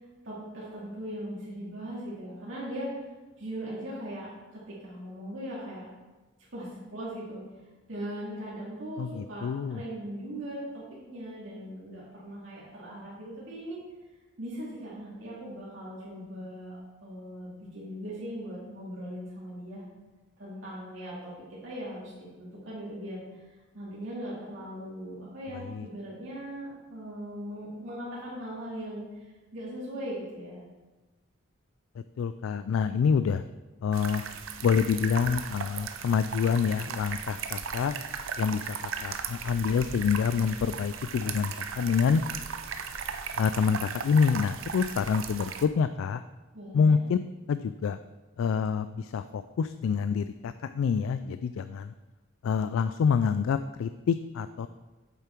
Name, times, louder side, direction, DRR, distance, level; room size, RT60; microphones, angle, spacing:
voice 1, 0.2-3.0 3.4-5.9 6.5-7.4 7.9-13.8 14.4-19.8 20.4-23.2 23.7-30.6 46.5-47.0, equal, 70° right, -7 dB, 2.5 m, -39 dB
voice 2, 9.0-9.8 25.5-25.9 32.2-33.4 33.8-34.2 34.6-38.0 38.4-42.2 43.4-46.2 46.7-47.2 47.5-48.0 48.4-51.9 52.4-54.7, left 6 dB, 90° left, 12 dB, 0.3 m, -27 dB
sound 1, 33.9-45.7, right 6 dB, 90° right, 0.6 m, -37 dB
8.2 x 6.8 x 4.5 m, 1.2 s
head